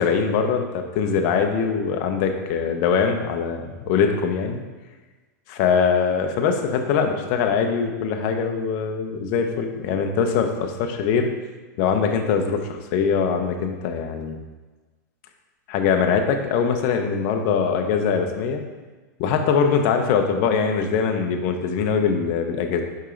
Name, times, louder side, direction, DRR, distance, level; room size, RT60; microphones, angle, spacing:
voice 1, 0.0-4.6 5.5-11.3 11.8-12.6 12.9-14.4 15.7-18.6 19.2-22.8, left 6 dB, 45° left, 5 dB, 0.7 m, -22 dB
5.4 x 5.0 x 3.8 m, 1.3 s
supercardioid pair, 145°, 10 cm